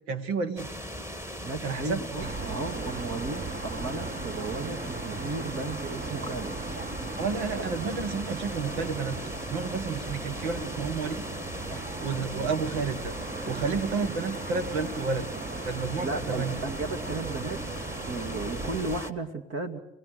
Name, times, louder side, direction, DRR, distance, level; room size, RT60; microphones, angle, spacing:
voice 1, 0.1-0.7 1.6-2.3 7.2-11.2 12.0-13.1 13.4-15.3 15.6-16.6, right 5 dB, 80° right, 11 dB, 1.6 m, -31 dB
sound 1, 0.6-19.1, equal, 10° right, 1.9 m, -39 dB
voice 2, 1.4-6.5 7.5-7.7 11.7-11.8 16.0-17.7 18.1-19.8, right 3 dB, 45° right, 7 dB, 2.1 m, -35 dB
sound 2, 2.2-19.0, right 4 dB, 30° right, 1.4 m, -38 dB
29.5 x 18.0 x 6.6 m, 0.87 s
hypercardioid pair, 65°, 32 cm